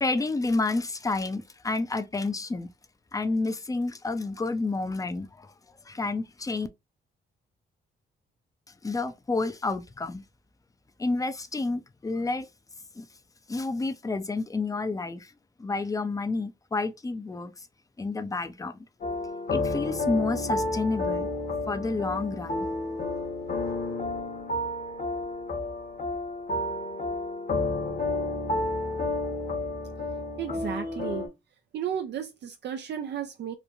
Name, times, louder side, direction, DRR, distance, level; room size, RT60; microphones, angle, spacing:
voice 1, 0.0-2.7 3.1-5.5 5.9-6.7 8.8-10.2 11.0-12.5 13.0-13.1 13.5-15.3 15.6-17.5 18.0-18.8 19.5-21.3 21.7-22.7, left 3 dB, 15° left, 0.5 m, -30 dB
sound 1, 19.0-31.3, left 2 dB, 45° left, 1.0 m, -31 dB
voice 2, 30.4-31.3 31.7-33.5, right 8 dB, 60° right, 0.4 m, -33 dB
3.0 x 2.1 x 2.4 m
cardioid pair, 65°, 20 cm